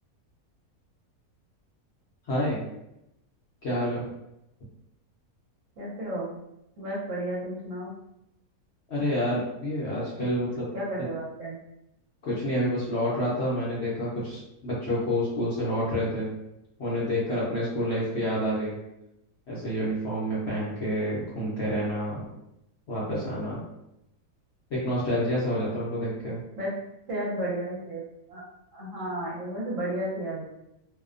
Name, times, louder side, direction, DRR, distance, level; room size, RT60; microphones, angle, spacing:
voice 1, 2.3-2.6 3.6-4.0 8.9-10.7 12.2-16.3 16.8-18.7 19.5-22.3 22.9-23.6 24.7-26.4, equal, 60° left, -8 dB, 0.8 m, -28 dB
voice 2, 5.8-6.3 6.8-7.9 10.7-11.6 26.6-26.7 27.1-28.0 28.3-28.4 28.7-30.4, right 1 dB, 60° right, -6 dB, 1.0 m, -32 dB
2.7 x 2.1 x 2.4 m, 0.85 s
omnidirectional pair, 1.7 m